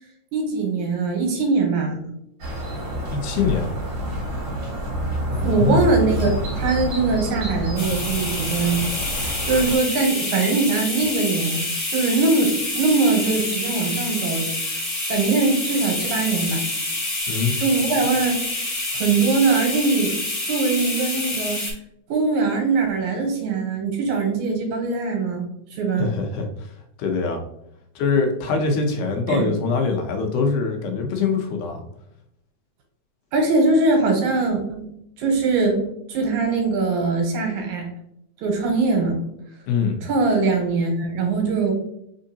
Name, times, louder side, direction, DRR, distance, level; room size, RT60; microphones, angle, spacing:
voice 1, 0.3-2.1 5.4-8.9 9.1-14.8 15.1-16.7 17.6-18.4 18.9-20.1 20.5-21.7 22.1-26.1 29.3-29.5 33.3-34.9 35.2-35.8 36.1-37.9 38.4-39.2 40.0-41.7, right 3 dB, 75° right, 2 dB, 2.3 m, -22 dB
sound 1, 2.4-9.8, equal, 45° right, 1.7 m, -28 dB
voice 2, 3.1-3.7 5.3-5.9 17.3-17.6 26.0-26.7 27.0-27.4 28.0-31.9 39.7-40.0, left 4 dB, 80° left, 3 dB, 2.2 m, -23 dB
sound 2, 7.8-21.7, left 2 dB, 45° left, 1.2 m, -27 dB
4.6 x 3.7 x 2.7 m, 0.77 s
omnidirectional pair, 3.5 m